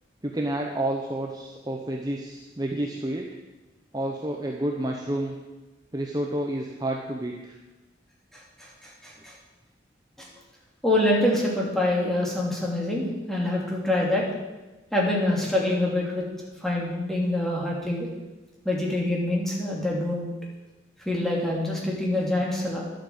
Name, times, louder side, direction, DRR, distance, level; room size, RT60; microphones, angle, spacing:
voice 1, 0.2-3.3 3.9-5.4 5.9-7.6, right 1 dB, 20° right, 1 dB, 1.0 m, -30 dB
voice 2, 8.6-9.3 10.2-10.3 10.8-14.2 14.9-16.2 16.6-18.1 18.6-20.3 21.0-22.8, left 1 dB, ahead, -3 dB, 3.0 m, -25 dB
11.0 x 8.9 x 8.0 m, 1.1 s
head